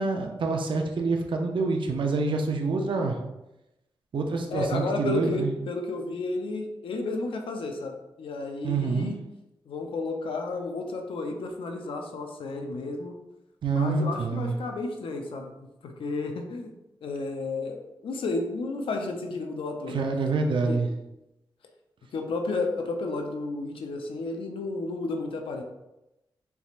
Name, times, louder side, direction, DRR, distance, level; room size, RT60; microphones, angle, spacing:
voice 1, 0.0-3.1 4.1-5.5 8.6-9.1 13.6-14.5 19.9-20.9, right 3 dB, 65° right, 3 dB, 0.6 m, -26 dB
voice 2, 4.5-9.2 9.7-13.1 13.7-15.5 15.8-16.7 17.0-20.1 20.7-20.8 22.1-25.6, left 3 dB, 80° left, 3 dB, 0.5 m, -32 dB
4.0 x 3.5 x 2.4 m, 0.93 s
cardioid pair, 65°, 9 cm